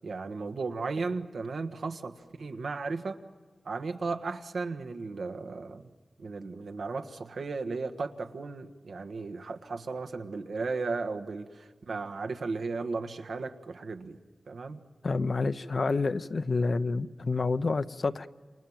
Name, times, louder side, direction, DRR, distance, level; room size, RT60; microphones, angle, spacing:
voice 1, 0.0-3.2 3.6-5.9 6.2-14.2 14.5-14.8, right 4 dB, 85° right, 6 dB, 1.5 m, -35 dB
voice 2, 15.0-18.3, left 3 dB, 55° left, 11 dB, 0.8 m, -28 dB
29.0 x 28.0 x 7.4 m, 1.5 s
wide cardioid pair, 95°, 0 cm